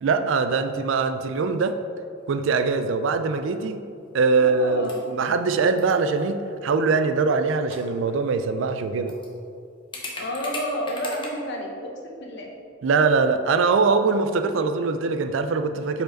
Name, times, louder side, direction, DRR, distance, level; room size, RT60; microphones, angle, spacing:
voice 1, 0.0-1.7 2.3-3.8 4.1-9.1 12.8-16.0, right 4 dB, 65° right, 9 dB, 0.4 m, -22 dB
sound 1, 2.4-2.8 3.1-3.2 4.1-4.4 4.7-5.1 5.8-6.3 7.4-7.5 7.7-8.3 8.7-8.8 9.1-9.3 9.9-11.3, left 2 dB, 25° left, 0.8 m, -38 dB
voice 2, 4.3-5.1 10.2-12.5, equal, 55° left, 1 dB, 0.9 m, -31 dB
5.1 x 4.7 x 4.4 m, 2.4 s
head